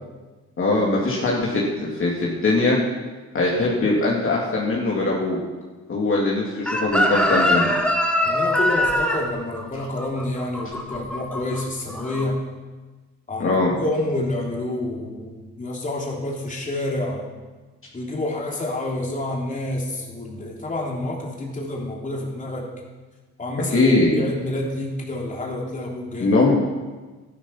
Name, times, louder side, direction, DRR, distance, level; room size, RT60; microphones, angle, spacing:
voice 1, 0.6-2.8 3.3-5.4 5.9-7.7 13.4-13.7 23.7-24.1 26.2-26.5, left 2 dB, 45° left, -4 dB, 3.0 m, -21 dB
Chicken rooster, 6.7-11.6 11.9-12.2, left 1 dB, 5° left, 2.1 m, -22 dB
voice 2, 8.2-12.4 13.3-17.2 17.9-22.7 23.4-26.5, left 1 dB, 25° left, -2 dB, 3.5 m, -28 dB
12.5 x 11.5 x 6.0 m, 1.3 s
cardioid pair, 90°, 30 cm